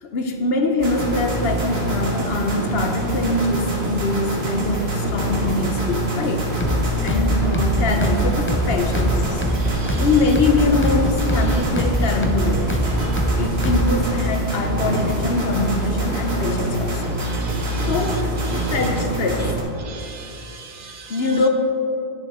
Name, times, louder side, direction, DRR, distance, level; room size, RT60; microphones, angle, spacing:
voice 1, 0.0-6.5 7.0-9.4 10.0-12.8 13.4-17.0 17.9-19.5 21.1-21.5, left 2 dB, 75° left, 5 dB, 1.0 m, -23 dB
sound 1, 0.8-19.6, right 1 dB, 80° right, 1.7 m, -25 dB
sound 2, 6.6-14.1, equal, 15° left, 0.5 m, -23 dB
voice 2, 9.6-10.0 17.2-18.0 18.5-18.8 19.8-21.2, right 5 dB, 60° right, 3 dB, 0.9 m, -39 dB
10.5 x 6.2 x 4.2 m, 2.7 s
omnidirectional pair, 1.0 m